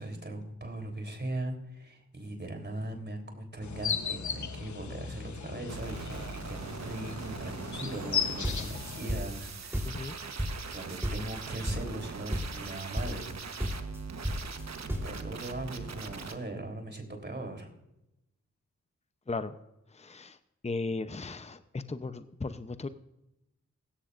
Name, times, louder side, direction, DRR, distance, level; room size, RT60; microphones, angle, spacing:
voice 1, 0.0-10.1 10.7-13.5 15.0-17.7, right 1 dB, 35° right, 4 dB, 3.6 m, -39 dB
sound 1, 3.6-9.2, left 7 dB, 70° left, 1.2 m, -36 dB
sound 2, 5.7-16.3, right 5 dB, 60° right, 1.2 m, -42 dB
sound 3, 8.1-9.5 9.7-10.8 11.0-11.4 11.7-12.1 12.3-12.7 13.0-13.4 13.6-15.2, equal, 10° right, 3.8 m, -33 dB
voice 2, 9.8-10.2 19.3-19.5 19.9-20.4 20.6-22.9, left 3 dB, 20° left, 11 dB, 0.8 m, -36 dB
16.5 x 14.0 x 2.6 m, 0.89 s
cardioid pair, 40°, 30 cm